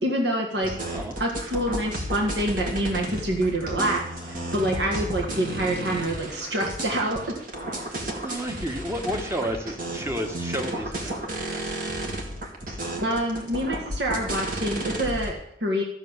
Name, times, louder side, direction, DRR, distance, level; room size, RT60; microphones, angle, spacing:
voice 1, 0.0-7.3 13.0-15.8, right 1 dB, 65° right, -1 dB, 1.7 m, -27 dB
sound 1, 0.6-15.3, right 1 dB, 50° right, 2.1 m, -32 dB
voice 2, 7.8-11.8, equal, 15° right, 4 dB, 1.3 m, -32 dB
13.5 x 6.4 x 7.2 m, 0.78 s
head